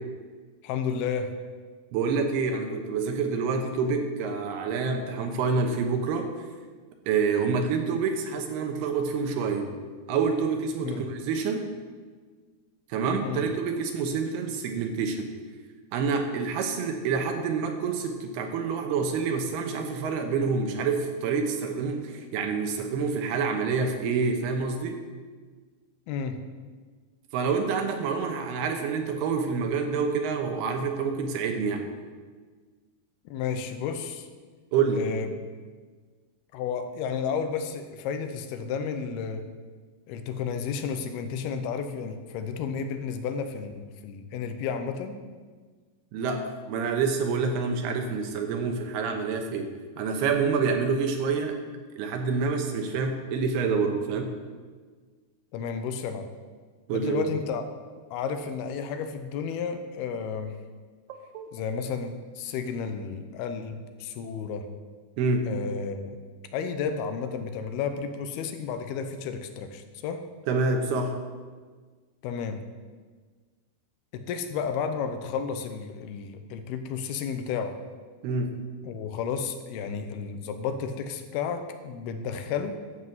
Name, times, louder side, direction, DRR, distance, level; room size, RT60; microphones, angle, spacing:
voice 1, 0.6-1.3 10.8-11.1 13.2-13.4 26.1-26.4 33.3-34.3 34.9-35.4 36.5-39.5 40.1-45.2 55.5-56.3 56.9-57.7 58.1-60.6 61.5-64.7 65.5-66.2 66.5-70.2 72.2-72.6 74.1-77.7 78.8-82.8, left 6 dB, 80° left, 8 dB, 2.7 m, -32 dB
voice 2, 1.9-6.3 7.1-9.8 10.1-11.7 12.9-15.3 15.9-25.0 27.3-31.9 34.7-35.0 46.1-51.6 52.0-54.3 56.9-57.3 61.1-61.5 65.2-65.5 70.5-71.2 78.2-78.5, right 5 dB, 80° right, 4 dB, 3.0 m, -27 dB
12.0 x 5.6 x 7.8 m, 1.5 s
omnidirectional pair, 4.6 m